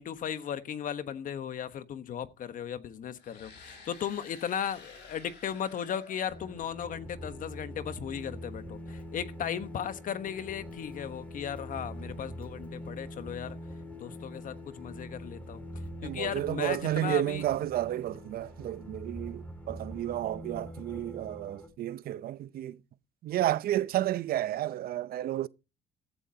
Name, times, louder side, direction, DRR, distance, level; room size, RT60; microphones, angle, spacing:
voice 1, 0.0-13.6 14.0-15.6 16.0-17.5, left 9 dB, 50° left, 1.2 m, -36 dB
sound 1, 3.2-7.1, left 4 dB, 80° left, 6.4 m, -52 dB
sound 2, 6.3-21.7, equal, 10° left, 3.3 m, -44 dB
voice 2, 16.0-22.8 23.2-25.5, right 13 dB, 60° right, 0.7 m, -31 dB
15.5 x 12.5 x 2.8 m
cardioid pair, 110°, 17 cm